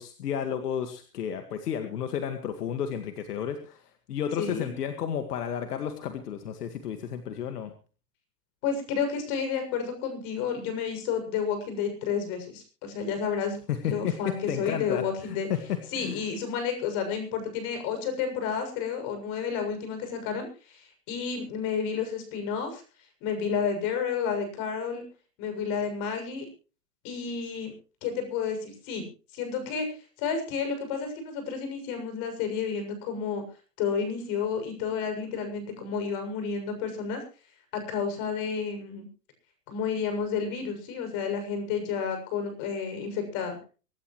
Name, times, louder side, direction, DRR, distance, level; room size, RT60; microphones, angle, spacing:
voice 1, 0.0-7.7 13.7-16.2, left 8 dB, 75° left, 7 dB, 2.0 m, -32 dB
voice 2, 4.4-4.7 8.6-13.6 13.8-15.5 15.9-22.8 23.2-25.0 25.4-26.5 27.0-27.7 28.0-29.1 29.3-33.4 33.8-37.2 37.7-39.1 39.7-43.6, left 6 dB, 45° left, 7 dB, 7.2 m, -31 dB
24.5 x 13.0 x 3.2 m, 0.36 s
hypercardioid pair, 120°, 47 cm